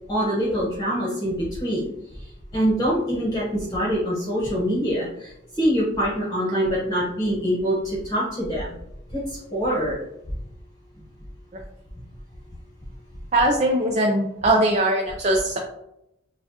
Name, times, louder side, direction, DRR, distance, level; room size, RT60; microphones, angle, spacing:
voice 1, 0.1-2.2 2.5-8.8 9.1-10.0, equal, 20° left, -6 dB, 1.1 m, -24 dB
voice 2, 13.3-15.6, right 1 dB, 35° right, -1 dB, 0.5 m, -20 dB
6.8 x 2.3 x 2.8 m, 0.81 s
head